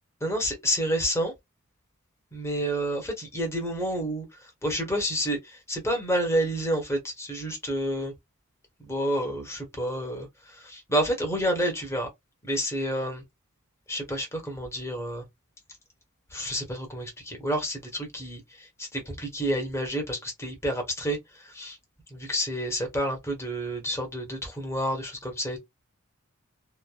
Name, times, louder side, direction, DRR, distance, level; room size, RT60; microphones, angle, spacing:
voice 1, 0.2-1.3 2.3-8.1 8.8-12.1 12.4-13.2 13.9-15.2 16.3-21.8 22.1-25.6, equal, 10° left, 1.1 m, -29 dB
3.1 x 2.1 x 2.3 m
head